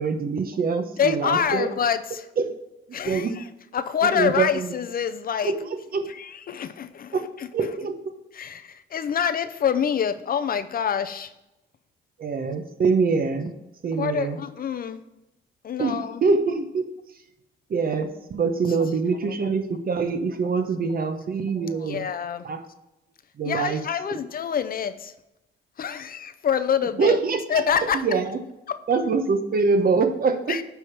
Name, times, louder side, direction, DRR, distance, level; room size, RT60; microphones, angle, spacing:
voice 1, 0.0-1.7 2.4-2.5 2.9-3.3 4.0-4.7 5.4-5.6 5.9-6.0 7.1-7.2 7.5-8.1 12.2-13.5 13.8-14.4 15.8-16.9 17.7-22.0 22.4-22.6 23.4-23.8 24.1-24.2 27.0-27.4 27.9-28.4 28.9-30.6, right 4 dB, 50° right, 8 dB, 1.0 m, -24 dB
voice 2, 1.0-2.2 2.9-3.4 3.7-5.5 6.1-7.5 8.3-11.3 14.0-15.0 15.6-16.2 19.2-19.3 21.6-22.5 23.4-25.1 25.8-27.2 27.5-28.0 28.7-28.8 30.5-30.6, left 8 dB, 45° left, 12 dB, 0.5 m, -26 dB
9.3 x 3.5 x 5.8 m, 0.94 s
cardioid pair, 90°, 20 cm